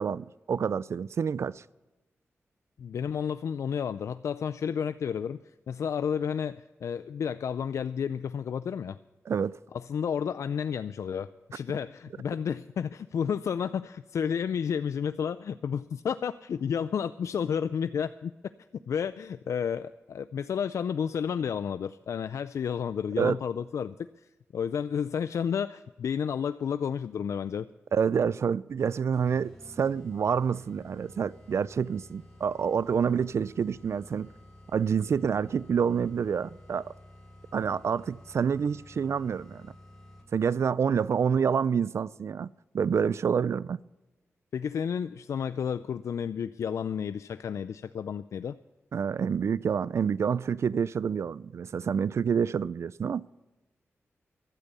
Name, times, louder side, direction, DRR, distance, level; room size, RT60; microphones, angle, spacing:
voice 1, 0.0-1.6 9.3-9.6 23.2-23.4 27.9-34.3 34.7-36.9 37.5-39.7 40.3-42.5 42.7-43.8 48.9-53.3, right 7 dB, 65° right, 0.4 m, -28 dB
voice 2, 2.8-5.4 5.7-9.0 9.7-18.3 18.9-24.3 24.5-27.7 44.5-48.6, left 7 dB, 85° left, 0.4 m, -31 dB
sound 1, 29.1-40.5, left 1 dB, 5° left, 6.0 m, -52 dB
15.5 x 12.0 x 5.5 m
wide cardioid pair, 85°, 5 cm